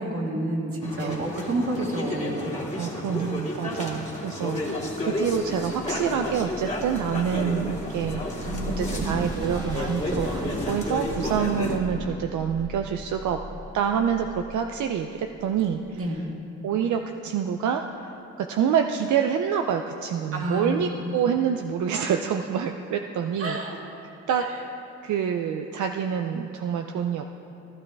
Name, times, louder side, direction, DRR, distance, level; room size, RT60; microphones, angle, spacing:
voice 1, 0.0-2.5 8.5-9.3 16.0-16.2 20.3-20.7 21.0-21.2 23.4-23.8, right 1 dB, 50° right, 0 dB, 1.9 m, -29 dB
sound 1, 0.8-11.8, left 1 dB, 25° left, 2.2 m, -32 dB
voice 2, 2.8-13.4 13.7-16.2 16.6-23.6 24.3-24.5 25.0-27.3, right 8 dB, 80° right, 5 dB, 0.5 m, -27 dB
sound 2, 6.3-16.1, equal, 15° right, 1.6 m, -38 dB
15.5 x 12.0 x 3.4 m, 2.7 s
cardioid pair, 75°, 30 cm